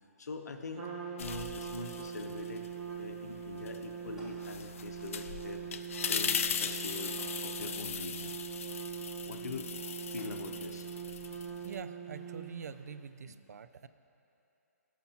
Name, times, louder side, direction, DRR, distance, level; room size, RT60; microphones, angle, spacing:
voice 1, 0.2-0.9 1.2-2.7 3.0-5.6 6.1-8.4 9.2-9.7 10.1-10.9 11.3-11.4 13.2-13.3, left 4 dB, 90° left, 6 dB, 0.8 m, -43 dB
Trumpet, 0.7-12.9, right 7 dB, 25° right, 1.1 m, -42 dB
sound 1, 1.2-2.7 3.1-11.8, left 7 dB, 55° left, 0.4 m, -39 dB
sound 2, 1.2-2.1 4.2-5.0 5.3-5.4 7.2-8.0 10.2-10.9 11.6-11.7, equal, 5° right, 1.7 m, -57 dB
voice 2, 11.3-13.9, right 6 dB, 75° right, 13 dB, 0.4 m, -45 dB
17.0 x 5.9 x 2.8 m, 2.8 s
hypercardioid pair, 160°, 9 cm